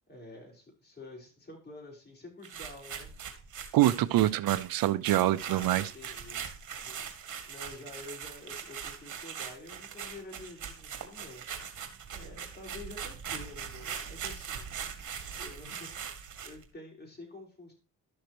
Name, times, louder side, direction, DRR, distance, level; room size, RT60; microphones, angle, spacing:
voice 1, 0.1-3.1 5.4-6.4 6.9-11.4 12.1-14.7 15.4-16.1 16.4-17.7, left 2 dB, 30° left, 5.1 m, -48 dB
sound 1, 2.4-16.6, right 7 dB, 60° right, 2.0 m, -41 dB
voice 2, 3.7-5.9, right 14 dB, 80° right, 0.7 m, -25 dB
12.5 x 6.5 x 3.0 m
cardioid pair, 75°, 35 cm